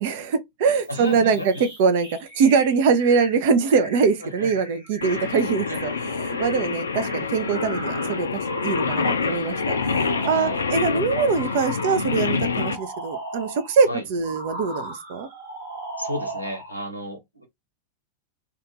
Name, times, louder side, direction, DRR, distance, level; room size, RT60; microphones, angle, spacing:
voice 1, 0.0-15.3, right 5 dB, 50° right, 0.5 m, -23 dB
sound 1, 0.7-10.9 11.3-13.8 14.2-16.8, right 2 dB, 80° right, 1.5 m, -38 dB
voice 2, 0.9-1.6 4.4-4.5 5.7-5.8 6.1-6.3 10.3-10.6 13.9-14.0 16.0-17.4, left 1 dB, 90° left, 0.8 m, -32 dB
Singing, 5.0-12.7, left 5 dB, 70° left, 0.4 m, -26 dB
2.5 x 2.4 x 2.8 m
figure-of-eight pair, 90°, 0 cm